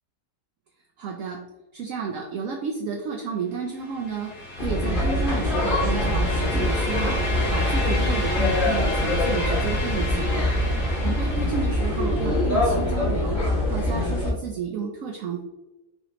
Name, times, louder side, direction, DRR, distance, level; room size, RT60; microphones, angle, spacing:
voice 1, 1.0-1.4 1.7-10.5 11.0-13.4 13.7-15.4, right 5 dB, 70° right, 2 dB, 0.8 m, -31 dB
sound 1, 3.8-12.7, left 1 dB, 75° left, 2.3 m, -32 dB
sound 2, 4.6-14.3, left 1 dB, 35° left, 1.2 m, -24 dB
5.7 x 2.9 x 2.9 m, 1.0 s
omnidirectional pair, 1.9 m